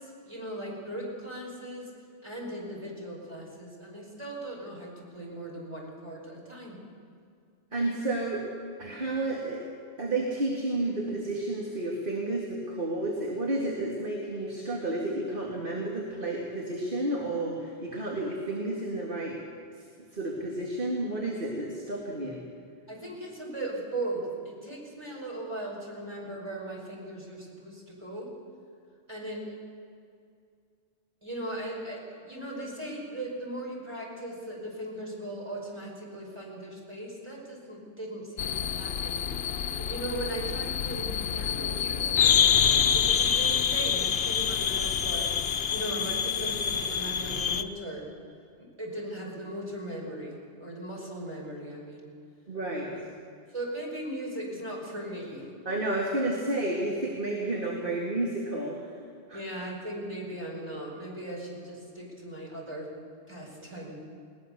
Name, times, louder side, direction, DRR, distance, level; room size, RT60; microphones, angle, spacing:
voice 1, 0.0-1.9 2.2-6.8 22.9-28.3 29.1-29.4 31.2-39.2 39.8-42.5 42.9-45.3 45.7-48.1 48.5-52.1 53.5-55.5 59.3-62.9 63.3-64.0, right 1 dB, 25° right, -2 dB, 5.3 m, -38 dB
voice 2, 7.7-8.5 8.8-9.6 10.0-19.4 19.8-19.9 20.1-22.4 52.5-52.9 55.7-58.8 59.3-59.4, right 2 dB, 50° right, -2 dB, 2.5 m, -31 dB
sound 1, 38.4-47.6, left 8 dB, 65° left, 1.0 m, -26 dB
21.0 x 19.5 x 6.8 m, 2.3 s
omnidirectional pair, 1.1 m